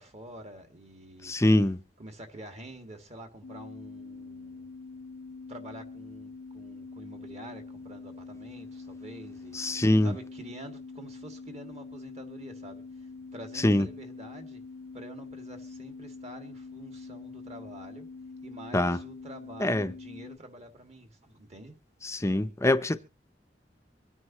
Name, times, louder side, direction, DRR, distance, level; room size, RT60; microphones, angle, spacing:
voice 1, 0.0-1.4 2.0-4.7 5.5-14.6 14.9-18.1 18.4-21.8 22.2-22.3, right 1 dB, 40° right, 2.2 m, -47 dB
voice 2, 1.2-1.8 9.5-10.1 13.6-13.9 18.7-19.0 19.6-19.9 22.0-23.0, left 1 dB, 15° left, 0.6 m, -24 dB
sound 1, 3.4-20.4, left 4 dB, 80° left, 0.7 m, -45 dB
24.5 x 9.6 x 3.0 m
head